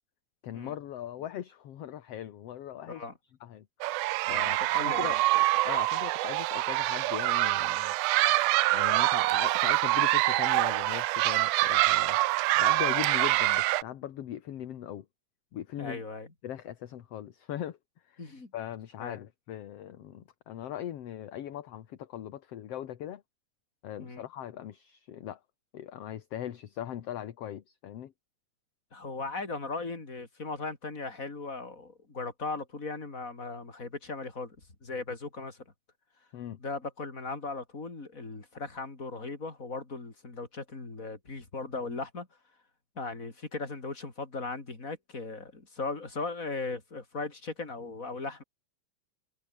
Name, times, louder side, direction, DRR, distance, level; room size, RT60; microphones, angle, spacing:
voice 1, 0.4-3.1 3.4-3.7 4.3-7.9 8.7-15.1 15.5-16.0 16.4-17.8 18.0-18.2 18.5-23.2 23.8-25.4 25.7-28.1 36.3-36.6, left 11 dB, 60° left, 2.2 m, -40 dB
sound 1, 3.8-13.8, right 18 dB, 85° right, 2.1 m, -25 dB
voice 2, 4.2-5.2 12.9-13.0 15.8-16.3 18.2-18.5 19.0-19.2 24.0-24.2 28.9-34.6 34.8-35.6 36.6-42.3 43.0-48.4, left 3 dB, 25° left, 4.4 m, -38 dB
omnidirectional pair, 3.6 m